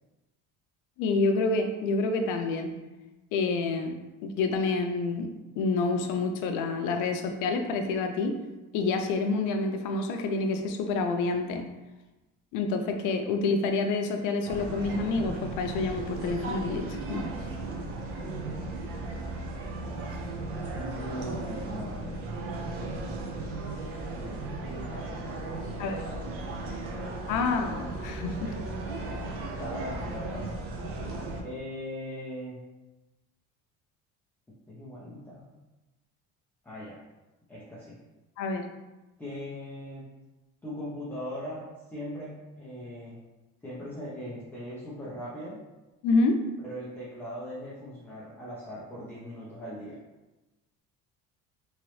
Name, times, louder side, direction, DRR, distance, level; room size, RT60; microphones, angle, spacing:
voice 1, 1.0-2.7 3.3-3.9 4.2-5.3 5.6-8.4 8.7-11.7 12.5-17.2 25.8-26.1 27.3-28.6 38.4-38.7 46.0-46.4, left 3 dB, 80° left, 6 dB, 0.5 m, -28 dB
sound 1, 14.5-31.4, right 2 dB, 50° right, 0.6 m, -36 dB
voice 2, 18.2-18.8 20.7-22.2 24.1-26.8 28.7-30.6 31.4-32.6 34.7-35.4 36.6-37.0 37.5-38.0 39.2-40.1 40.6-43.2 43.6-45.6 46.6-50.0, equal, 5° left, -10 dB, 0.5 m, -40 dB
3.1 x 2.9 x 3.1 m, 1.1 s
cardioid pair, 165°, 30 cm